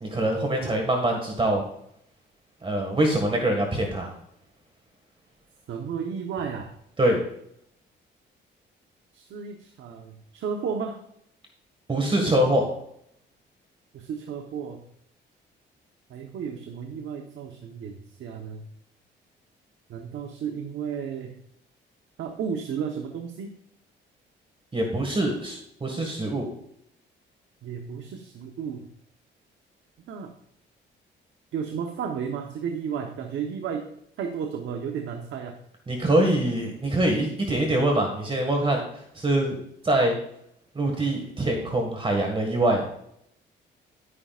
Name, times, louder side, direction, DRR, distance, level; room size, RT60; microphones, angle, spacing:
voice 1, 0.0-1.6 2.6-4.2 7.0-7.2 11.9-12.7 24.7-26.5 35.9-38.9 39.1-39.6 39.8-40.2 40.8-42.9, right 1 dB, 25° right, 2 dB, 1.9 m, -24 dB
voice 2, 5.7-6.7 9.1-11.0 13.9-14.8 16.1-18.7 19.9-21.4 22.2-23.5 27.6-28.8 30.1-30.3 31.5-33.9 34.2-35.6, right 7 dB, 75° right, 3 dB, 1.1 m, -33 dB
11.5 x 9.9 x 2.5 m, 0.72 s
cardioid pair, 90°, 20 cm